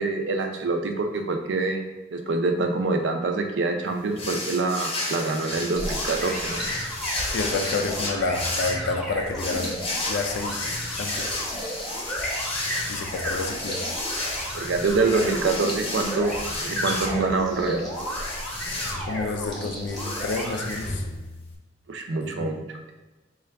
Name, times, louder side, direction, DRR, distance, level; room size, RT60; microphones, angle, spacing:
voice 1, 0.0-6.6 14.5-17.9 21.9-22.9, right 3 dB, 85° right, 5 dB, 0.5 m, -26 dB
sound 1, 4.2-21.5, left 2 dB, 30° left, 0.6 m, -33 dB
sound 2, 5.8-20.8, equal, ahead, 0.7 m, -33 dB
voice 2, 7.3-9.8 10.1-11.4 12.9-13.8 19.1-21.0 22.2-22.6, left 3 dB, 75° left, 4 dB, 0.4 m, -29 dB
3.8 x 2.4 x 3.3 m, 1.1 s
head